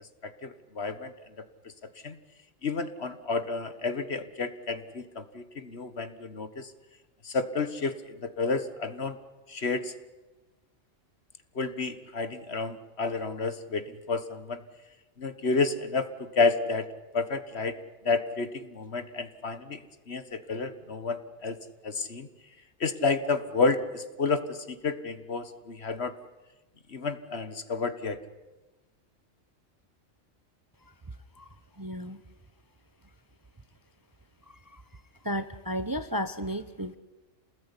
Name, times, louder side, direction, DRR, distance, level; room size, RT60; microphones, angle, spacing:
voice 1, 0.2-1.1 2.0-2.2 2.6-6.7 7.2-9.2 9.5-9.9 11.5-14.6 15.2-16.9 17.1-17.8 18.0-19.8 20.1-21.6 21.8-22.3 22.8-26.2 26.9-28.2, left 4 dB, 55° left, 11 dB, 1.7 m, -30 dB
voice 2, 31.8-32.2 34.5-34.8 35.2-37.0, equal, 20° right, 12 dB, 0.9 m, -33 dB
28.5 x 19.5 x 9.9 m, 1.1 s
omnidirectional pair, 1.3 m